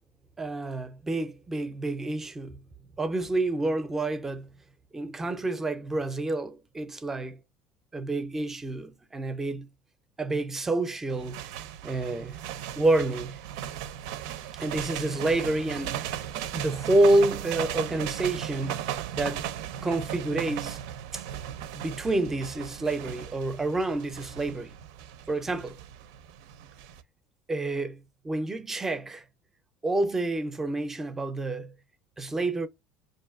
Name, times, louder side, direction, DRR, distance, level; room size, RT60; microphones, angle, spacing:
voice 1, 0.4-2.6 3.0-4.5 4.9-7.4 7.9-9.7 10.2-11.4 11.8-12.4 12.8-13.4 14.5-16.1 16.5-19.4 19.8-20.8 21.1-21.2 21.7-24.7 25.3-25.8 27.5-28.0 28.2-29.2 29.8-31.7 32.2-32.7, right 2 dB, 15° right, 0.5 m, -28 dB
sound 1, 11.1-27.0, right 10 dB, 80° right, 0.5 m, -37 dB
5.5 x 2.6 x 2.4 m
cardioid pair, 130°, 3 cm